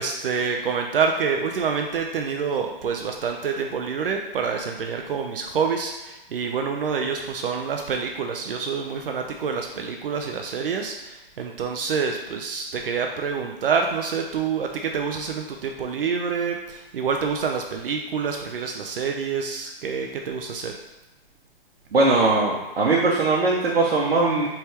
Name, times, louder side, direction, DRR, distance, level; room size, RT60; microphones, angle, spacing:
voice 1, 0.0-20.7, right 5 dB, 65° right, 3 dB, 0.6 m, -27 dB
voice 2, 21.9-24.5, right 3 dB, 90° right, -5 dB, 0.9 m, -20 dB
4.4 x 3.4 x 3.3 m, 1.1 s
hypercardioid pair, 145°, 30 cm